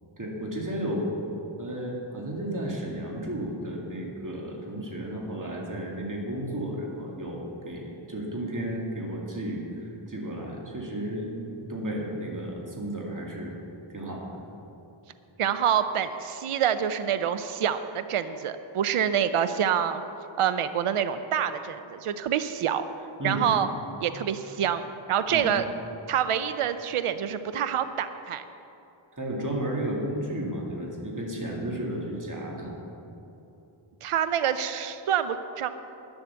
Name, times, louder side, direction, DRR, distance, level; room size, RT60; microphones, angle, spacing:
voice 1, 0.2-1.1 1.6-13.6 13.9-14.3 23.2-23.5 25.3-25.5 29.1-32.7, right 1 dB, 40° right, -2 dB, 2.3 m, -33 dB
voice 2, 15.4-20.0 20.4-22.8 23.2-23.7 24.0-25.6 26.1-28.4 34.0-35.7, right 9 dB, 85° right, 11 dB, 0.6 m, -26 dB
10.5 x 7.9 x 7.0 m, 2.9 s
wide cardioid pair, 65°, 50 cm